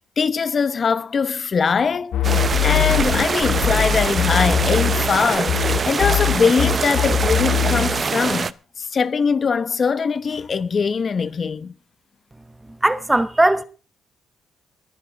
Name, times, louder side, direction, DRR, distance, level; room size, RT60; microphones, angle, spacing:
voice 1, 0.2-2.1 2.6-11.7, left 5 dB, 40° left, 0.9 m, -22 dB
sound 1, 2.1-5.2 5.5-8.0, left 8 dB, 80° left, 2.3 m, -21 dB
sound 2, 2.2-8.5, right 5 dB, 35° right, 0.7 m, -24 dB
voice 2, 12.8-13.6, right 1 dB, 10° right, 1.0 m, -18 dB
21.0 x 9.9 x 3.9 m
cardioid pair, 120°, 0 cm